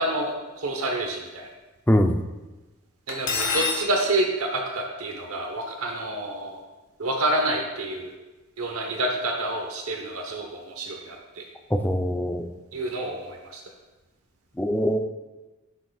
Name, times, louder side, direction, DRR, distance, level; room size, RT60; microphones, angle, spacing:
voice 1, 0.0-1.5 3.1-6.6 7.0-8.1 8.6-11.4 12.7-13.6, right 1 dB, 85° right, 2 dB, 1.0 m, -28 dB
Cutlery silverware, 3.1-3.9, left 4 dB, 65° left, 1.5 m, -26 dB
voice 2, 11.7-12.5 14.6-15.0, equal, 10° left, 5 dB, 0.5 m, -22 dB
15.0 x 6.4 x 2.4 m, 1.1 s
head